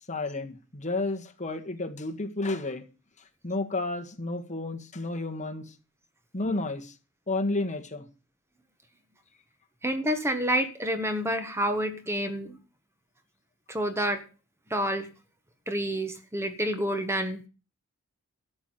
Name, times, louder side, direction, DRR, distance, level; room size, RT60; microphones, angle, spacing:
voice 1, 0.1-2.8 3.4-5.7 6.3-6.9 7.3-8.1, left 2 dB, 35° left, 1.8 m, -31 dB
voice 2, 9.8-12.6 13.7-14.2 14.7-15.1 15.7-17.4, equal, 10° right, 1.2 m, -28 dB
13.0 x 6.2 x 9.4 m
head